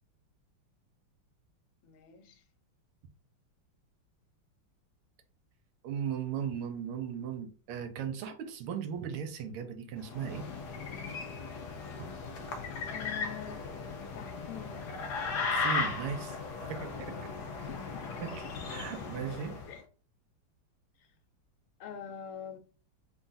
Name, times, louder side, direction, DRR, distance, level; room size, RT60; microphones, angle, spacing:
voice 1, 1.8-2.4 12.9-13.7 14.1-14.9 17.7-18.3 19.7-19.8 21.8-22.6, left 8 dB, 85° left, 1.6 m, -45 dB
voice 2, 5.8-10.5 15.4-16.4 16.7-17.3 18.2-18.4 18.7-19.6, right 7 dB, 80° right, 1.5 m, -37 dB
sound 1, 10.0-19.7, left 4 dB, 65° left, 1.0 m, -37 dB
3.7 x 2.3 x 3.9 m
omnidirectional pair, 2.4 m